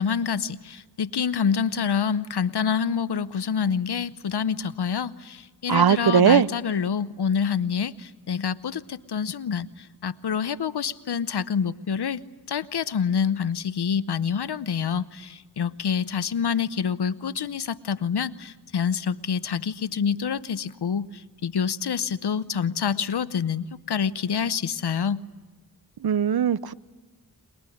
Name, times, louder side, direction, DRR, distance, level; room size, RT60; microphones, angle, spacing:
voice 1, 0.0-12.2 12.5-25.2, left 7 dB, 75° left, 16 dB, 0.8 m, -27 dB
voice 2, 5.7-6.5 26.0-26.7, right 8 dB, 65° right, 18 dB, 0.7 m, -19 dB
23.0 x 22.5 x 9.9 m, 1.3 s
cardioid pair, 50°, 40 cm